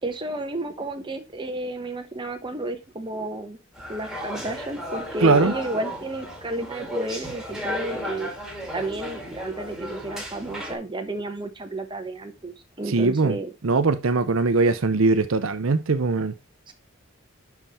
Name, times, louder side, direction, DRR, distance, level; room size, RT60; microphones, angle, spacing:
voice 1, 0.0-3.6 3.9-8.3 8.7-13.5 16.7-16.8, right 1 dB, 25° right, 1.1 m, -32 dB
sound 1, 3.7-10.8, equal, ahead, 2.2 m, -34 dB
voice 2, 5.2-5.5 12.9-13.4 13.6-16.3, right 3 dB, 80° right, 0.7 m, -21 dB
5.9 x 5.7 x 4.2 m
head